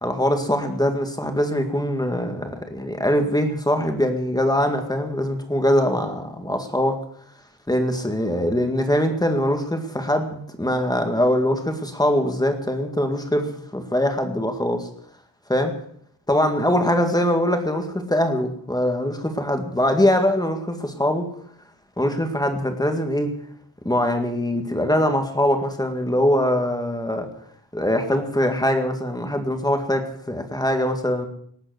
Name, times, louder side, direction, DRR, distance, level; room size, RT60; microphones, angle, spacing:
voice 1, 0.0-7.0 7.7-14.9 15.5-15.8 16.3-21.3 22.0-23.4 23.8-27.3 27.7-31.3, left 1 dB, 10° left, 5 dB, 2.0 m, -22 dB
19.0 x 8.2 x 7.9 m, 0.66 s
wide cardioid pair, 160°, 41 cm